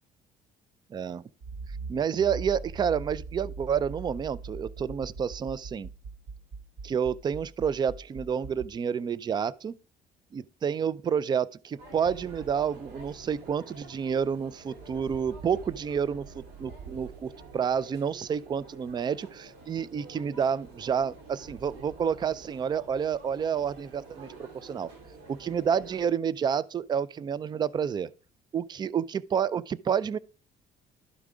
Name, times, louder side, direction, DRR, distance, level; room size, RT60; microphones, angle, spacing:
voice 1, 0.9-1.2 1.9-5.9 6.8-9.7 10.3-24.9 25.3-28.1 28.5-30.2, right 7 dB, 25° right, 0.3 m, -29 dB
Accelerating revving vroom, 1.4-8.7, right 4 dB, 55° right, 1.1 m, -41 dB
sound 1, 11.8-26.1, right 4 dB, 80° right, 3.2 m, -48 dB
12.0 x 4.7 x 3.7 m
cardioid pair, 110°, 17 cm